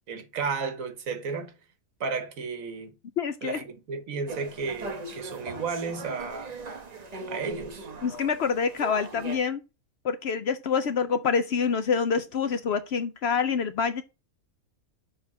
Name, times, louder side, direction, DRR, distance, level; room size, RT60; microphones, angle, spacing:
voice 1, 0.1-1.5 2.0-2.9 3.4-6.6 7.3-7.9, right 5 dB, 75° right, 1.5 m, -33 dB
voice 2, 3.2-3.6 8.0-9.6 10.0-14.0, left 6 dB, 60° left, 0.7 m, -26 dB
sound 1, 4.3-9.4, right 2 dB, 30° right, 1.0 m, -39 dB
6.5 x 3.5 x 6.0 m
omnidirectional pair, 1.5 m